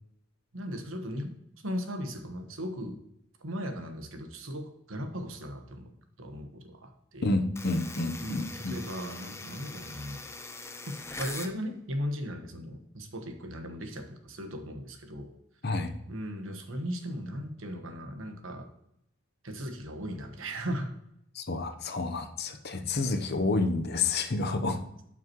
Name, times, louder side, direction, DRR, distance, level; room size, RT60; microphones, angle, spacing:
voice 1, 0.5-1.3 1.6-3.0 3.4-5.9 6.2-7.3 8.2-10.2 10.9-15.3 15.7-15.8 16.1-18.7 19.4-20.9, equal, 75° right, 5 dB, 1.3 m, -37 dB
voice 2, 7.2-8.7 15.6-15.9 21.3-24.8, left 3 dB, 50° left, 8 dB, 0.9 m, -29 dB
sound 1, 7.6-11.6, left 3 dB, 15° left, 0.6 m, -42 dB
12.0 x 5.9 x 3.1 m, 0.77 s
head